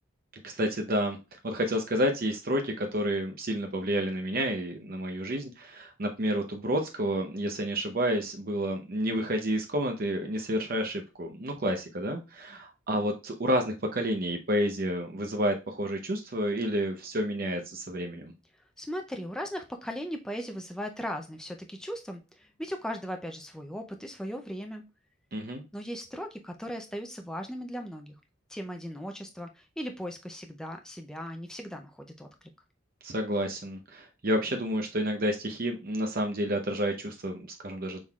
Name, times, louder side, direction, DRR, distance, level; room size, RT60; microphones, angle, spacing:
voice 1, 0.4-1.2 1.4-18.3 25.3-25.6 33.0-38.0, equal, 45° right, 4 dB, 0.7 m, -30 dB
voice 2, 18.8-24.8 25.7-28.1 28.5-32.5, equal, 5° left, 4 dB, 0.4 m, -38 dB
6.2 x 3.7 x 2.3 m, 0.27 s
head